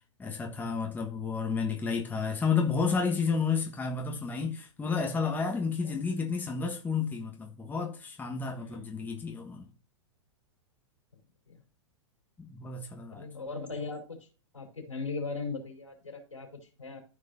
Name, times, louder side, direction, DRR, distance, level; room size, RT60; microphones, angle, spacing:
voice 1, 0.2-9.7 12.4-13.3, left 5 dB, 10° left, 1.3 m, -31 dB
voice 2, 8.6-8.9 11.5-11.6 13.1-14.3 14.5-17.0, left 4 dB, 90° left, 4.0 m, -39 dB
13.5 x 5.3 x 2.6 m
figure-of-eight pair, 105°, 16 cm